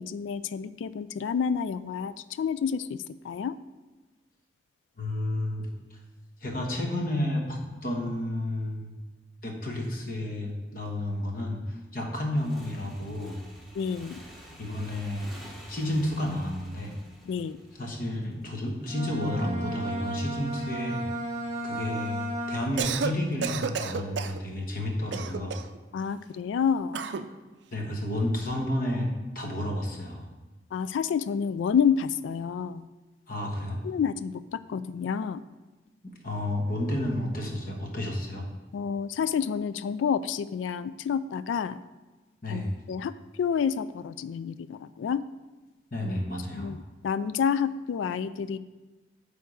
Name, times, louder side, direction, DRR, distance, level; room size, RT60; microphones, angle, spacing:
voice 1, 0.0-3.5 13.8-14.2 17.2-17.6 25.9-27.1 30.7-32.8 33.8-35.4 38.7-41.8 42.5-42.6 42.9-43.1 43.4-45.2 46.5-48.6, left 7 dB, 85° left, 14 dB, 0.3 m, -29 dB
voice 2, 5.0-6.0 6.4-9.0 9.4-13.4 14.6-15.3 15.7-17.0 17.8-21.1 21.6-25.6 27.7-29.1 29.3-30.2 33.3-33.8 36.0-38.5 42.4-42.7 45.9-46.7, left 1 dB, 50° left, 0 dB, 1.3 m, -31 dB
Motorcycle / Engine, 12.4-18.7, equal, ahead, 1.0 m, -48 dB
Bowed string instrument, 18.8-23.1, right 1 dB, 15° right, 1.3 m, -34 dB
Cough, 22.6-23.1 23.4-24.4 25.1-25.8 26.9-27.3, right 6 dB, 70° right, 0.4 m, -31 dB
9.0 x 3.5 x 6.3 m, 1.2 s
head